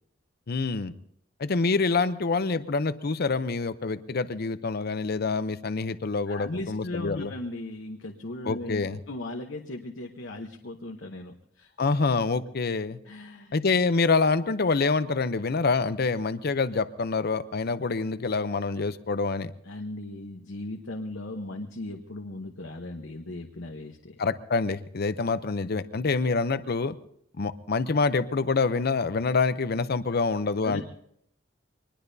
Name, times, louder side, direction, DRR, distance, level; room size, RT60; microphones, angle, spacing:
voice 1, 0.5-0.9 1.4-7.3 8.4-9.0 11.8-13.0 13.5-19.5 24.2-26.9 27.4-30.8, left 4 dB, 55° left, 13 dB, 0.6 m, -26 dB
voice 2, 6.3-11.7 13.1-13.5 19.6-24.2 30.6-30.8, left 2 dB, 75° left, 3 dB, 1.0 m, -37 dB
24.0 x 20.5 x 2.7 m, 0.71 s
head